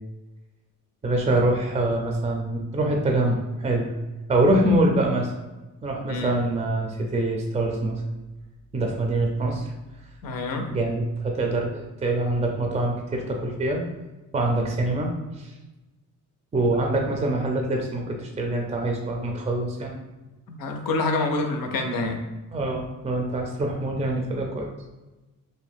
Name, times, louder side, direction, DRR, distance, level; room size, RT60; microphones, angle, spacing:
voice 1, 1.0-3.9 4.3-5.3 5.8-8.0 8.7-9.7 10.7-13.8 14.3-15.1 15.4-15.5 16.5-19.9 22.5-24.7, right 2 dB, 20° right, 1 dB, 0.4 m, -24 dB
voice 2, 10.2-10.7 20.5-22.2, left 3 dB, 85° left, 4 dB, 0.5 m, -27 dB
2.6 x 2.1 x 3.4 m, 1.1 s
cardioid pair, 90°, 33 cm